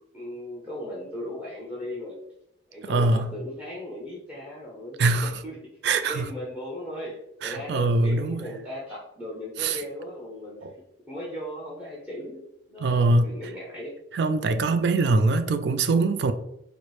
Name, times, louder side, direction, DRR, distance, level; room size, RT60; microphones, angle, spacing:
voice 1, 0.1-2.2 2.7-5.6 6.0-10.7 11.1-14.0, left 1 dB, 5° right, 0.6 m, -37 dB
voice 2, 2.9-3.4 5.0-5.3 5.8-6.2 7.4-8.4 9.6-9.8 10.6-10.7 12.8-13.3 14.1-16.3, right 3 dB, 65° right, 0.3 m, -22 dB
4.2 x 2.0 x 3.1 m
head